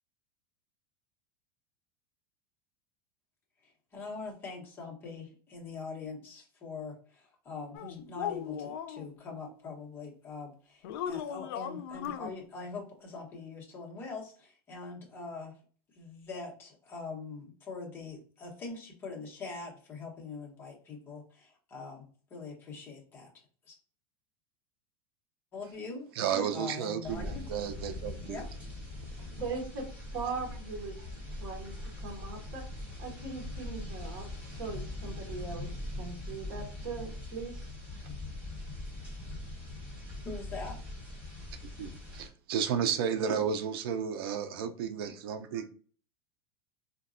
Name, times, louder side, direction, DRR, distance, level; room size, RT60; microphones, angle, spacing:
voice 1, 3.6-15.5 15.9-22.0 22.3-23.3 23.7-23.8 25.5-26.0 26.5-27.4 28.3-28.5 40.2-40.8, left 4 dB, 15° left, 0.8 m, -43 dB
sound 1, 7.7-9.0 10.8-12.3, left 9 dB, 85° left, 0.4 m, -37 dB
voice 2, 26.1-28.4 41.6-45.7, right 7 dB, 85° right, 0.4 m, -33 dB
sound 2, 27.0-42.3, left 2 dB, 10° right, 1.2 m, -41 dB
voice 3, 29.3-29.9 30.1-32.6 33.0-35.7 35.9-37.7, right 4 dB, 60° right, 1.0 m, -40 dB
3.9 x 2.2 x 2.4 m
supercardioid pair, 165°, 12 cm